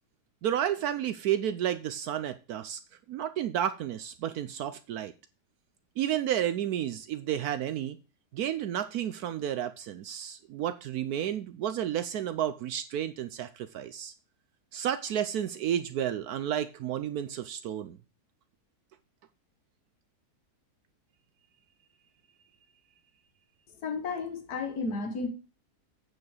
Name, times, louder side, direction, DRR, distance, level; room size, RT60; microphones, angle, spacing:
voice 1, 0.4-2.8 3.1-5.1 6.0-8.0 8.3-14.1 14.7-18.0, right 10 dB, 75° right, 12 dB, 1.1 m, -31 dB
voice 2, 23.7-25.3, left 4 dB, 75° left, 6 dB, 2.0 m, -33 dB
8.7 x 6.6 x 4.8 m, 0.33 s
omnidirectional pair, 1.7 m